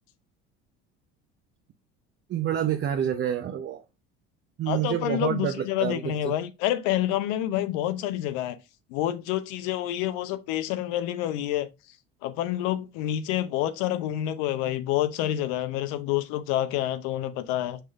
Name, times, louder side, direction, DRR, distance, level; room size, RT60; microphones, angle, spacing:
voice 1, 2.3-3.8 4.6-6.3, right 10 dB, 40° right, 0.6 m, -28 dB
voice 2, 4.7-8.6 8.9-11.7 12.2-17.8, left 13 dB, 70° left, 0.6 m, -28 dB
6.1 x 3.3 x 2.3 m
hypercardioid pair, 75°, 30 cm